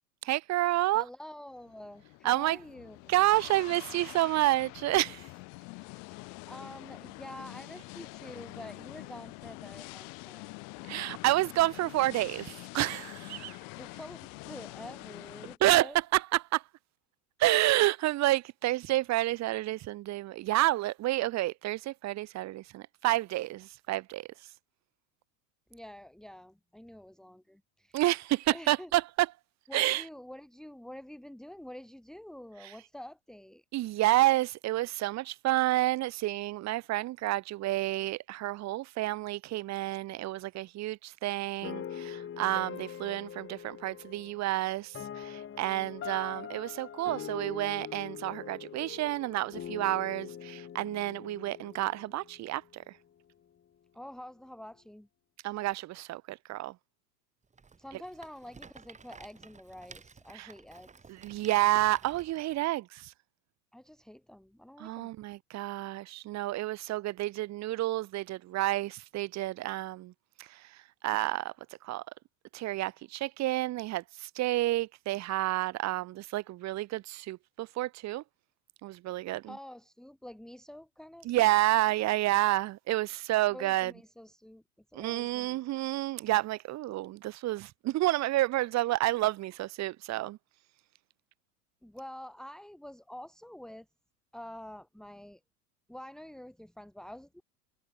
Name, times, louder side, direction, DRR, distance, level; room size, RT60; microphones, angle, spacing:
voice 1, 0.2-1.0 2.2-2.6 3.1-5.3 10.9-13.6 15.6-16.6 17.4-24.3 27.9-29.3 29.7-30.0 32.6-32.7 33.7-52.6 55.4-56.7 60.3-60.5 61.1-63.1 64.8-70.1 70.4-70.6 71.0-71.5 71.8-72.0 72.5-78.2 78.8-79.5 81.2-83.9 84.9-90.4, right 16 dB, 35° right, 1.9 m, -29 dB
voice 2, 0.9-3.1 6.5-10.5 13.8-16.0 25.7-28.0 28.5-28.9 29.7-33.6 53.9-55.1 57.8-61.1 63.7-65.1 79.5-81.5 83.5-84.6 84.9-86.0 91.8-93.9 94.3-95.4 95.9-97.4, left 1 dB, ahead, 1.8 m, -47 dB
sound 1, 1.5-15.6, left 34 dB, 50° left, 2.4 m, -46 dB
sound 2, 41.6-52.7, left 9 dB, 30° left, 6.4 m, -43 dB
Rattle, 57.5-62.6, right 5 dB, 15° right, 3.6 m, -53 dB
figure-of-eight pair, 85°, 44 cm